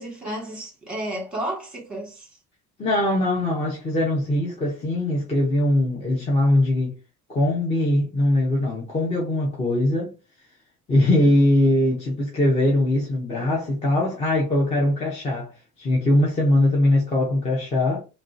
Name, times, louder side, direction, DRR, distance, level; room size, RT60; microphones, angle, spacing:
voice 1, 0.0-2.3 10.9-11.3, right 1 dB, 5° right, 1.3 m, -33 dB
voice 2, 2.8-6.9 7.3-10.1 10.9-15.5 15.8-18.0, left 1 dB, 20° left, 0.6 m, -21 dB
3.0 x 2.6 x 2.4 m
cardioid pair, 180°, 29 cm